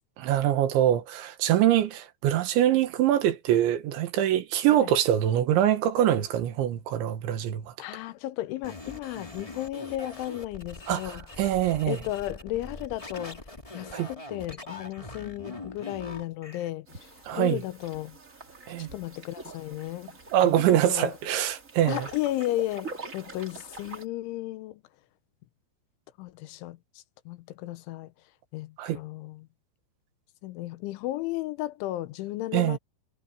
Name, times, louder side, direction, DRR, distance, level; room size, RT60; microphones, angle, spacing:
voice 1, 0.2-7.7 10.9-12.0 13.9-14.1 17.3-17.6 18.7-18.9 20.3-22.1 28.8-29.0 32.5-32.8, right 11 dB, 75° right, 3.8 m, -24 dB
voice 2, 7.8-11.5 11.9-13.4 13.7-18.2 18.8-20.2 20.4-21.1 21.9-24.8 26.2-28.1 28.5-29.5 30.4-32.8, left 15 dB, 80° left, 3.2 m, -34 dB
sound 1, 8.6-16.7, left 2 dB, 50° left, 0.4 m, -42 dB
sound 2, 16.9-24.1, right 3 dB, 35° right, 1.3 m, -45 dB
omnidirectional pair, 5.5 m